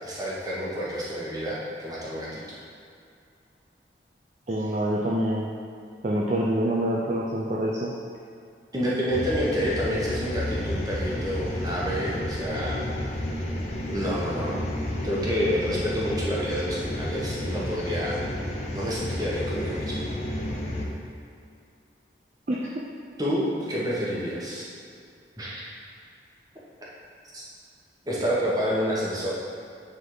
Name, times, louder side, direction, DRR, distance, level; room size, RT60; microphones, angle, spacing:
voice 1, 0.0-2.6 8.7-12.8 13.9-14.6 15.0-18.2 18.7-20.0 23.2-24.7 25.4-25.7 27.3-27.4 28.1-29.3, equal, 20° right, -6 dB, 1.2 m, -28 dB
voice 2, 4.5-5.5 6.0-7.9 22.5-22.7, right 1 dB, 40° right, -4 dB, 0.5 m, -26 dB
sound 1, 9.1-20.8, left 1 dB, 40° left, 0.8 m, -31 dB
9.4 x 3.7 x 3.9 m, 2.4 s
head